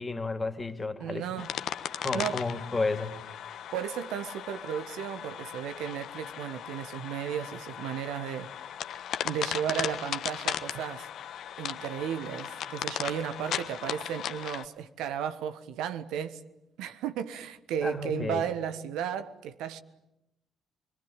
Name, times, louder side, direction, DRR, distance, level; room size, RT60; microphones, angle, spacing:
voice 1, 0.0-1.5 2.0-3.2 17.8-18.4, left 3 dB, 25° left, 3.0 m, -32 dB
voice 2, 1.0-1.5 2.1-2.4 3.7-8.5 9.2-11.1 11.6-16.4 16.8-19.8, right 9 dB, 65° right, 1.4 m, -34 dB
sound 1, 1.4-14.6, left 10 dB, 60° left, 1.3 m, -37 dB
29.0 x 22.5 x 9.1 m
figure-of-eight pair, 45°, 0 cm